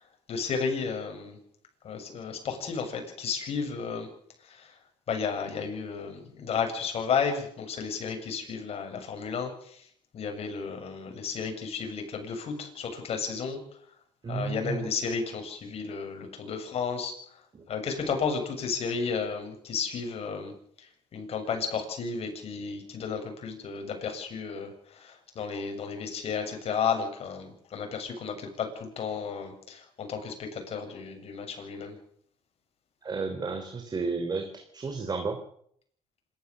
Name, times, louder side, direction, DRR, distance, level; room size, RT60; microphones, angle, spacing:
voice 1, 0.3-1.4 1.8-4.1 4.5-4.7 5.1-9.8 10.1-13.6 14.3-17.1 17.7-20.5 21.1-32.0, left 6 dB, 55° left, 4 dB, 7.4 m, -33 dB
voice 2, 14.2-14.9 17.5-17.6 33.0-35.4, right 4 dB, 35° right, 6 dB, 3.5 m, -32 dB
26.5 x 14.0 x 7.1 m, 0.64 s
supercardioid pair, 80°, 12 cm